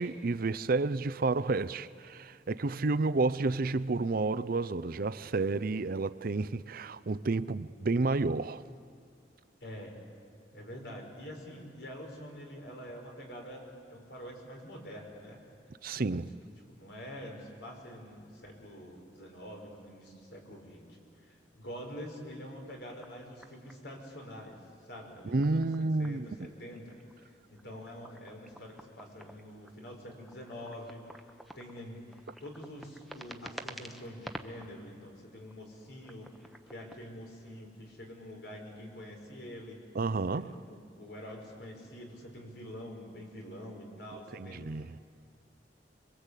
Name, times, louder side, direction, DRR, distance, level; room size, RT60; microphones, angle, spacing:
voice 1, 0.0-8.6 15.8-16.3 25.3-26.5 40.0-40.5 44.3-44.9, right 3 dB, 55° right, 0.6 m, -30 dB
voice 2, 9.6-10.0 10.5-15.4 16.0-16.2 16.7-36.3 36.7-39.8 40.3-45.1, equal, 70° left, 5.4 m, -46 dB
sound 1, 23.0-24.2 25.1-26.5 26.7-34.7 35.3-37.0, right 1 dB, ahead, 1.1 m, -49 dB
26.5 x 23.5 x 8.4 m
head